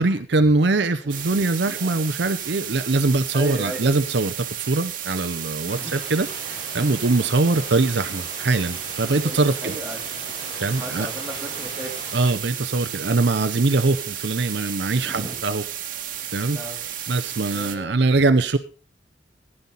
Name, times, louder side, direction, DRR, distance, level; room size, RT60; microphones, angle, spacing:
voice 1, 0.0-9.8 10.6-11.1 12.1-15.6 16.3-16.6 17.1-18.6, right 3 dB, 65° right, 11 dB, 0.7 m, -22 dB
sound 1, 1.1-17.8, right 10 dB, 45° right, 1.6 m, -33 dB
voice 2, 1.6-2.0 3.3-3.8 5.7-5.9 6.8-6.9 7.4-7.6 9.2-10.0 10.7-11.9 15.0-15.4 16.5-17.1 17.5-18.0, right 1 dB, 10° right, -1 dB, 3.1 m, -35 dB
sound 2, 5.6-12.3, equal, 30° left, 4.8 m, -39 dB
15.5 x 9.9 x 4.0 m, 0.37 s
head